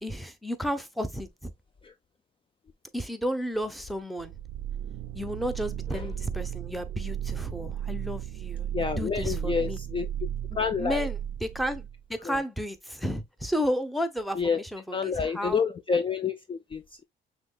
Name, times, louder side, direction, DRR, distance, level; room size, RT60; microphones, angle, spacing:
voice 1, 0.0-1.5 2.9-4.3 5.1-8.7 9.0-9.8 10.8-15.6, equal, ahead, 0.7 m, -32 dB
sound 1, 4.2-12.0, right 10 dB, 80° right, 0.5 m, -35 dB
voice 2, 8.7-10.1 10.6-11.1 12.2-12.4 14.3-14.6 14.9-17.0, left 6 dB, 25° left, 0.4 m, -29 dB
6.1 x 2.9 x 2.2 m
cardioid pair, 90°, 20 cm